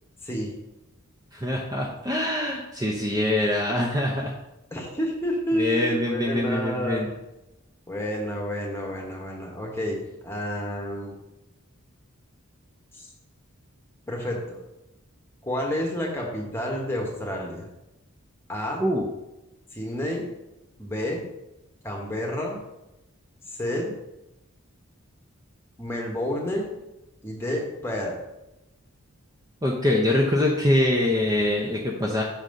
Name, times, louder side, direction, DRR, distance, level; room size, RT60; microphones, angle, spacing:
voice 1, 0.2-0.5 4.7-7.1 7.9-11.2 12.9-13.1 14.1-14.6 15.4-17.7 18.5-18.8 19.7-20.3 20.8-21.2 21.8-22.6 23.5-24.0 25.8-26.8 27.2-28.2, equal, 10° left, -1 dB, 1.2 m, -30 dB
voice 2, 1.3-4.3 5.5-7.1 18.8-19.1 29.6-32.2, left 1 dB, 15° right, -2 dB, 0.7 m, -24 dB
6.2 x 4.2 x 5.3 m, 0.93 s
head